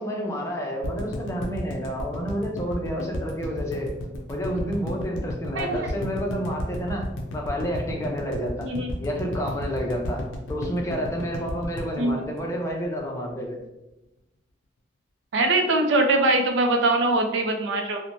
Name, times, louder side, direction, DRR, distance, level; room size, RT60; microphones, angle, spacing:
voice 1, 0.0-3.9 4.3-7.0 7.3-8.7 9.0-10.2 10.5-13.6, equal, 15° left, 0 dB, 0.4 m, -29 dB
sound 1, 0.8-13.0 13.3-13.4 13.6-13.7, left 1 dB, 80° left, 0.5 m, -33 dB
voice 2, 5.5-5.9 8.6-8.9 12.0-12.2 15.3-18.0, right 2 dB, 75° right, 3 dB, 0.5 m, -22 dB
3.0 x 2.1 x 2.6 m, 0.96 s
head